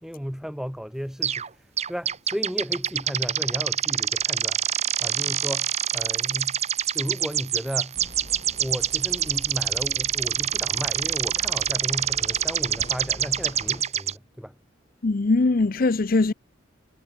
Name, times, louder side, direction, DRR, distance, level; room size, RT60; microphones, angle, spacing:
voice 1, 0.0-6.6 6.9-8.0 8.5-14.6, equal, ahead, 2.4 m, -34 dB
sound 1, 1.2-1.5 1.8-14.1, right 9 dB, 35° right, 1.2 m, -26 dB
sound 2, 7.9-13.8, left 1 dB, 25° left, 3.1 m, -44 dB
voice 2, 15.0-16.3, left 3 dB, 45° left, 0.6 m, -21 dB
head